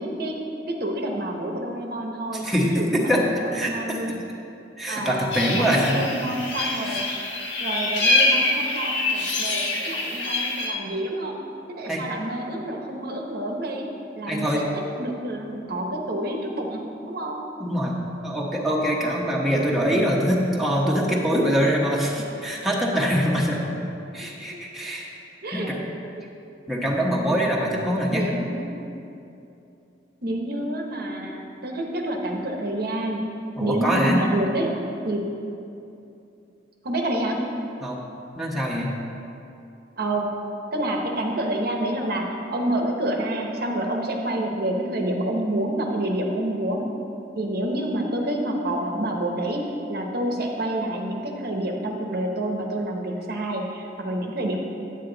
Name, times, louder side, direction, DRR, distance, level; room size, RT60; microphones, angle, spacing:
voice 1, 0.0-4.2 4.9-5.3 5.6-7.1 7.6-11.4 11.7-13.9 14.2-14.6 15.0-17.4 24.5-24.6 25.4-25.7 28.1-28.9 30.2-34.7 35.1-35.2 36.8-37.4 40.0-40.4 40.7-46.8 47.4-54.6, right 1 dB, 55° right, 1 dB, 1.0 m, -28 dB
voice 2, 2.3-3.3 3.5-4.2 4.8-6.0 6.8-7.0 11.8-12.0 14.3-14.6 17.6-23.6 24.1-25.1 25.5-25.8 26.7-28.3 33.6-34.2 37.8-38.0 38.4-38.9, equal, ahead, -4 dB, 1.0 m, -24 dB
sound 1, 5.3-10.7, left 2 dB, 65° left, 1.3 m, -25 dB
9.1 x 8.9 x 3.9 m, 2.7 s
head